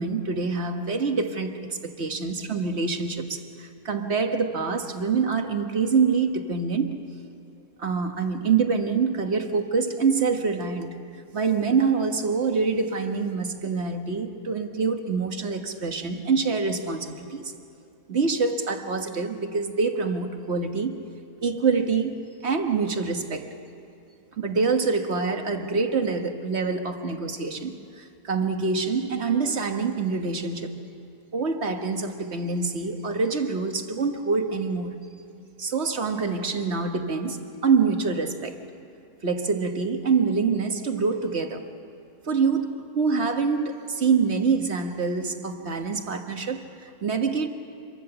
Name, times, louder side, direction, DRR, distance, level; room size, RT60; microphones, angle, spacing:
voice 1, 0.0-7.0 7.8-11.0 11.3-17.5 18.1-21.1 21.4-23.6 24.4-30.7 31.3-34.9 35.6-38.6 39.2-41.7 42.3-47.5, right 5 dB, 50° right, 1.6 m, -26 dB
26.0 x 23.5 x 6.9 m
omnidirectional pair, 1.5 m